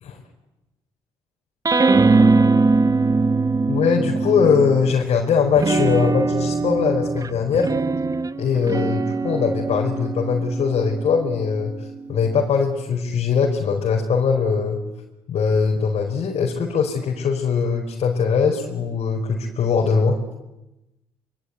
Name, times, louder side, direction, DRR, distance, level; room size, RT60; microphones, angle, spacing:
sound 1, 1.6-5.0 5.5-12.3, right 3 dB, 30° right, 1.4 m, -21 dB
voice 1, 3.7-7.7 8.4-11.7 12.1-14.8 15.3-20.2, left 6 dB, 60° left, -1 dB, 4.9 m, -21 dB
25.5 x 23.5 x 9.6 m, 0.96 s
hypercardioid pair, 50°, 12 cm